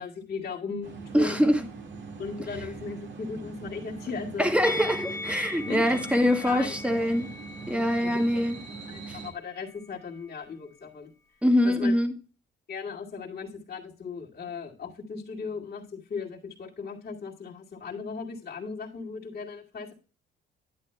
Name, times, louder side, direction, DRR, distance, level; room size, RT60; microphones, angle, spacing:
voice 1, 0.0-1.5 2.2-4.5 5.7-7.2 8.0-8.4 8.9-11.1 11.6-11.9 12.7-19.9, left 5 dB, 50° left, 2.3 m, -37 dB
sound 1, 0.8-9.3, right 4 dB, 70° right, 1.9 m, -42 dB
voice 2, 1.1-1.6 4.4-7.3 7.7-8.6 9.1-9.2 11.4-12.1, equal, 5° right, 1.6 m, -24 dB
Musical instrument, 4.6-9.9 10.1-10.3, left 2 dB, 15° left, 1.6 m, -40 dB
10.5 x 9.1 x 2.2 m
cardioid pair, 90°, 20 cm